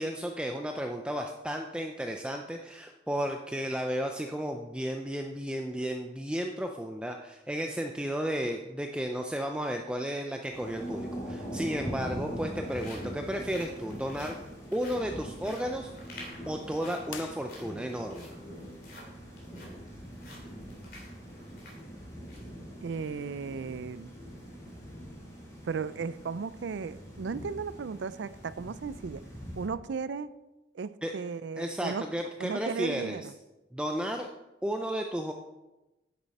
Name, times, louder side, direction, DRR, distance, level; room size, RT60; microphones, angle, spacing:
voice 1, 0.0-14.4 14.7-16.1 16.5-18.3 31.0-31.1 31.6-33.2 33.7-34.3 34.6-35.3, equal, 5° right, 3 dB, 0.4 m, -33 dB
Thunder / Rain, 10.5-29.7, equal, 20° left, 2.5 m, -42 dB
sound 1, 12.3-22.5 22.9-23.1 23.6-23.8, left 1 dB, 50° left, 2.9 m, -52 dB
sound 2, 17.0-18.1, left 8 dB, 85° left, 0.6 m, -46 dB
voice 2, 22.8-24.1 25.6-29.2 29.6-30.3 30.7-32.0 32.4-33.3, right 5 dB, 80° right, 16 dB, 0.4 m, -35 dB
9.9 x 7.3 x 4.2 m, 1.0 s
head